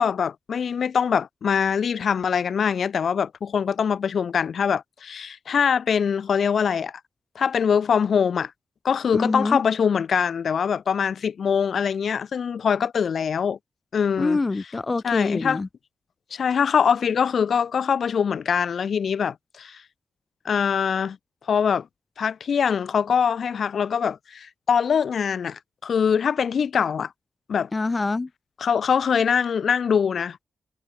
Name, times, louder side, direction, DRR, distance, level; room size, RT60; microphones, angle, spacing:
voice 1, 0.0-6.9 7.3-8.5 8.8-13.6 13.9-14.4 15.0-15.6 16.3-19.8 20.4-21.2 21.5-21.9 22.2-27.1 27.5-27.7 28.6-30.4, left 7 dB, 50° left, 2.6 m, -23 dB
voice 2, 9.1-9.6 14.2-15.7 27.7-28.3, left 3 dB, 20° left, 0.5 m, -25 dB
wide cardioid pair, 160°, 0 cm